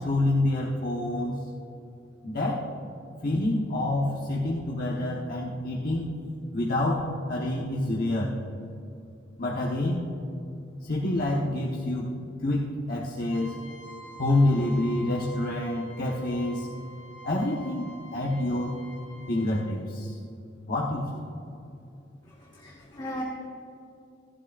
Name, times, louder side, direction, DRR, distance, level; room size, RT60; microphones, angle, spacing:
voice 1, 0.0-1.4 2.2-2.7 3.2-6.1 6.5-8.3 9.4-10.0 10.8-12.1 12.4-13.6 14.2-16.7 17.2-18.8 19.3-20.2 20.7-21.3, left 1 dB, 55° left, -4 dB, 1.2 m, -27 dB
Trumpet, 13.3-19.7, equal, 80° left, 1.6 m, -47 dB
voice 2, 22.2-23.2, equal, 25° left, -3 dB, 1.3 m, -38 dB
17.5 x 12.0 x 2.5 m, 2.6 s
head